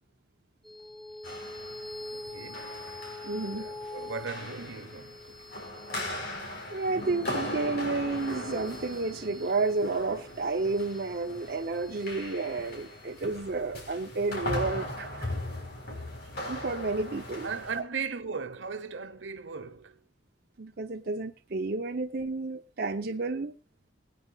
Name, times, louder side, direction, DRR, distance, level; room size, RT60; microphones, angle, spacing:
sound 1, 0.6-15.4, left 2 dB, ahead, 0.9 m, -46 dB
sound 2, 1.2-17.8, left 1 dB, 60° left, 4.2 m, -39 dB
voice 1, 2.1-2.8 3.4-5.5 17.4-20.0, right 5 dB, 80° right, 1.0 m, -38 dB
voice 2, 3.2-3.7 6.7-15.3 16.5-17.5 20.6-23.6, right 3 dB, 55° right, 0.7 m, -31 dB
23.0 x 9.4 x 2.4 m
head